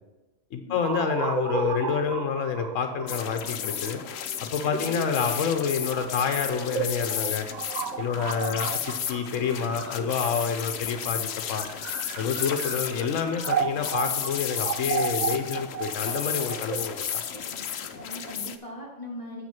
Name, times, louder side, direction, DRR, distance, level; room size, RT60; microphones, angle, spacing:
voice 1, 0.5-4.0 4.4-7.5 8.0-11.7 12.2-17.2, left 6 dB, 85° left, 6 dB, 1.1 m, -28 dB
sound 1, 0.8-10.6 11.4-18.3, right 8 dB, 70° right, 0.4 m, -34 dB
sound 2, 3.1-18.6, left 9 dB, 65° left, 0.8 m, -33 dB
voice 2, 17.7-19.5, left 1 dB, 25° left, -3 dB, 2.9 m, -41 dB
8.1 x 6.2 x 5.8 m, 1.1 s
omnidirectional pair, 1.3 m